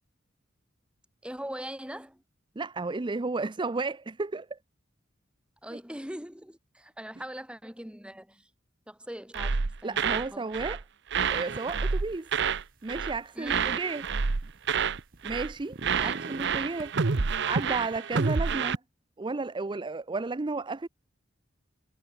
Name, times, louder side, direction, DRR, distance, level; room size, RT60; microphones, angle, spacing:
voice 1, 1.2-2.2 5.6-8.5 8.9-10.5 13.3-13.7 16.0-16.1, equal, 5° right, 7.4 m, -41 dB
voice 2, 2.6-4.6 9.8-10.8 11.3-12.3 12.8-14.0 15.2-18.8 19.2-20.9, right 3 dB, 25° right, 0.5 m, -33 dB
sound 1, 9.3-10.3 10.5-10.8 11.1-12.6 12.9-13.2 13.5-15.0 15.2-15.5 15.8-18.8, right 5 dB, 65° right, 0.8 m, -28 dB
sound 2, 11.1-11.8 12.1-13.1 13.7-15.3 15.6-16.9 17.5-18.0, right 2 dB, 50° right, 1.2 m, -44 dB
head